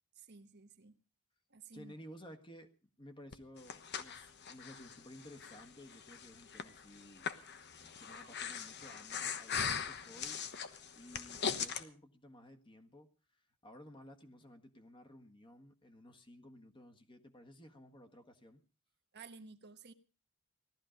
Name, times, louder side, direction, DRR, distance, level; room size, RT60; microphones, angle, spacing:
voice 1, 0.1-1.0 1.5-1.9 19.1-19.9, right 4 dB, 50° right, 8 dB, 1.2 m, -54 dB
voice 2, 1.7-2.7 3.0-7.3 7.8-10.5 10.9-13.1 13.3-18.6, equal, 25° left, 6 dB, 1.6 m, -55 dB
Breathing, 3.3-11.8, left 7 dB, 50° left, 1.2 m, -41 dB
18.0 x 13.0 x 5.2 m, 0.37 s
head